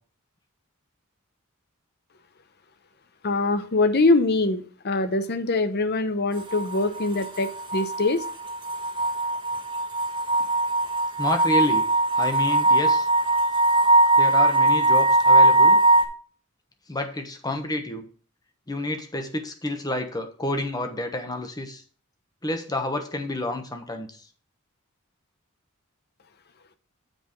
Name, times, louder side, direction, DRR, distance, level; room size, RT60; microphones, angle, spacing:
voice 1, 3.2-8.2, left 2 dB, 50° left, 10 dB, 0.8 m, -23 dB
sound 1, 6.4-16.0, right 2 dB, 20° right, 1.3 m, -20 dB
voice 2, 11.2-11.8 12.2-13.1 14.2-15.8 16.9-18.0 18.7-21.8 22.4-24.2, left 1 dB, 20° left, 6 dB, 1.1 m, -29 dB
8.0 x 4.8 x 5.2 m, 0.43 s
head